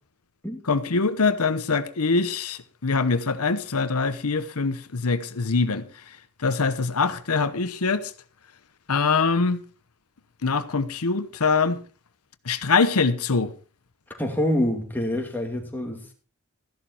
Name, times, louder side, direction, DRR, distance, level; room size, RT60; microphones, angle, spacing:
voice 1, 0.6-5.8 6.4-8.1 8.9-9.6 10.4-11.8 12.5-13.5, left 4 dB, 90° left, 1.0 m, -23 dB
voice 2, 14.2-16.1, left 1 dB, 10° left, 2.5 m, -26 dB
14.0 x 11.0 x 4.5 m
head